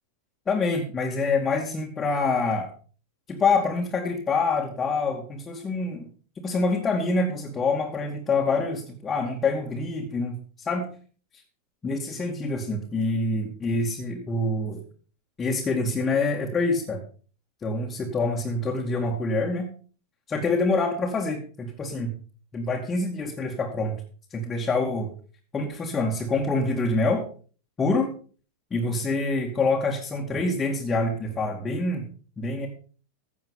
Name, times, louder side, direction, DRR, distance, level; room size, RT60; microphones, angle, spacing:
voice 1, 0.5-2.7 3.3-6.1 6.4-10.9 11.8-14.8 15.4-17.0 17.6-19.7 20.3-22.1 22.5-24.0 24.3-25.1 25.5-27.3 27.8-28.1 28.7-32.0 32.4-32.7, left 3 dB, 20° left, -1 dB, 2.4 m, -26 dB
16.0 x 7.1 x 5.5 m, 0.40 s
figure-of-eight pair, 90°, 0 cm